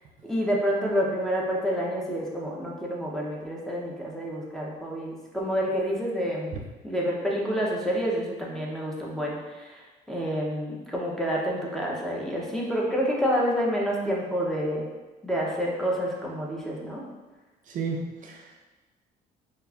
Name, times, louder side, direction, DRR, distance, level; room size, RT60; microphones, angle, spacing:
voice 1, 0.2-6.5 6.8-14.9 15.2-17.1, equal, ahead, -4 dB, 0.6 m, -28 dB
voice 2, 17.7-18.6, right 4 dB, 50° right, 0 dB, 0.4 m, -33 dB
4.6 x 2.4 x 2.3 m, 1.2 s
cardioid pair, 110°, 17 cm